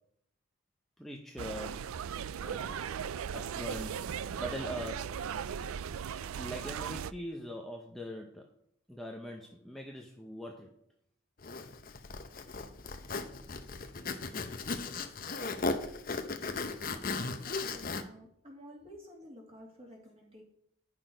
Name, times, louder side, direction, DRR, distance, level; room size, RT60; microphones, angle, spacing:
voice 1, 1.0-1.9 2.4-2.9 3.3-5.3 6.4-8.5 8.9-10.8, equal, ahead, 0 dB, 0.7 m, -42 dB
sound 1, 1.4-7.1, right 7 dB, 85° right, 0.4 m, -38 dB
Zipper (clothing), 11.4-18.0, left 3 dB, 45° left, 0.8 m, -36 dB
voice 2, 17.4-20.4, equal, 30° right, 0 dB, 2.4 m, -52 dB
11.0 x 6.0 x 5.1 m, 0.70 s
head